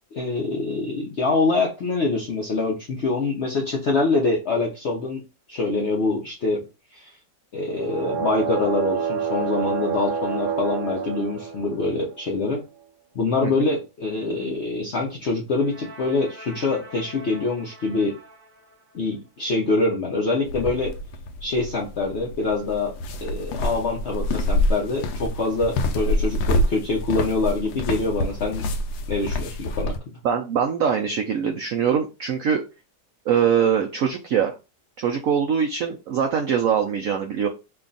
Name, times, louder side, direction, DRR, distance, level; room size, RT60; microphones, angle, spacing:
voice 1, 0.1-5.2 5.5-6.6 6.9-7.1 7.5-12.6 13.1-18.2 18.9-20.9 21.4-28.6 29.1-29.9, left 3 dB, 65° left, -1 dB, 0.6 m, -25 dB
sound 1, 7.6-12.2 15.6-18.5, right 6 dB, 45° right, 0.6 m, -30 dB
sound 2, 20.5-30.0, left 1 dB, 85° left, 1.3 m, -26 dB
voice 2, 30.2-32.6 33.3-34.5 35.0-37.5, right 7 dB, 75° right, 3 dB, 0.7 m, -22 dB
3.4 x 2.3 x 3.8 m, 0.28 s
omnidirectional pair, 2.0 m